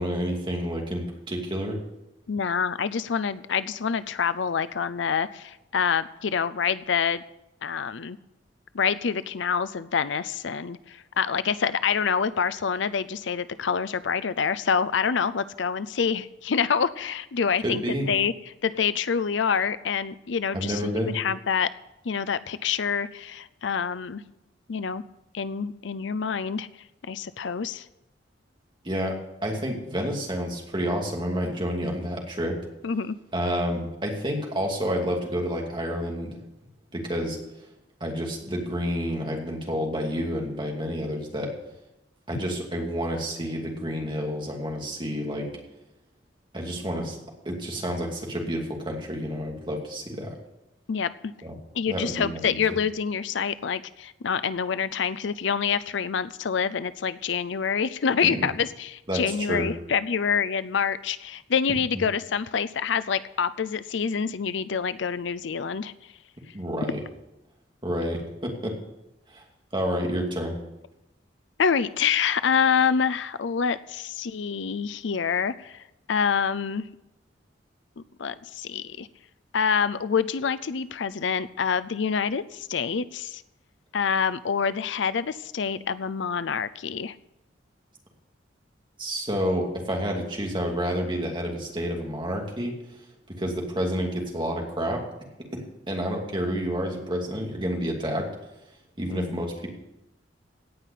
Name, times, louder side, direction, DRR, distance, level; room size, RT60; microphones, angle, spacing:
voice 1, 0.0-1.8 17.6-18.1 20.5-21.2 28.8-32.6 33.3-36.4 36.9-37.4 38.0-41.5 42.3-45.5 46.5-47.2 47.4-50.3 51.4-51.5 51.9-52.6 58.2-58.5 59.1-59.7 66.5-67.0 67.8-68.7 69.3-69.4 69.7-70.5 89.0-92.7 93.4-95.0 95.5-98.3 99.0-99.7, equal, 25° right, 0 dB, 2.6 m, -29 dB
voice 2, 2.3-7.2 7.6-8.2 8.7-17.8 18.1-18.3 18.6-21.7 22.1-24.2 24.7-25.0 25.3-26.7 27.1-27.8 32.8-33.2 50.9-51.3 51.7-65.9 71.6-76.8 78.2-79.1 79.5-83.4 83.9-87.1 99.1-99.4, left 6 dB, 70° left, 15 dB, 0.5 m, -26 dB
17.5 x 5.8 x 8.5 m, 0.91 s
head